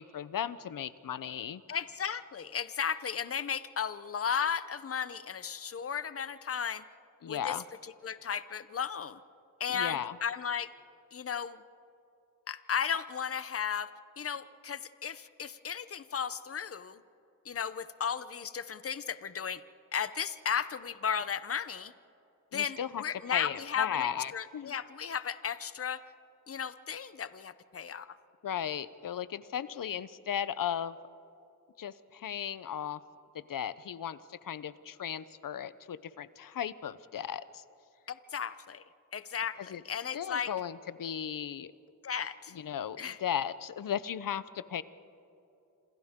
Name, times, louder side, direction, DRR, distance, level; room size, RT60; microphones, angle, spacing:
voice 1, 0.0-1.6 7.2-7.6 9.7-10.2 22.5-23.0 23.3-24.7 28.4-31.0 31.8-33.0 33.3-37.6 39.7-39.8 40.1-41.7 42.5-44.8, left 9 dB, 80° left, 16 dB, 0.7 m, -36 dB
voice 2, 1.7-6.8 7.3-7.6 7.8-9.2 9.6-10.7 11.1-11.6 12.5-17.0 17.4-19.6 19.9-21.9 22.5-26.1 26.5-28.2 38.1-38.8 39.1-40.5 42.0-42.5 43.0-43.2, left 7 dB, 45° left, 14 dB, 0.7 m, -35 dB
28.0 x 27.0 x 3.7 m, 2.8 s
wide cardioid pair, 95°, 33 cm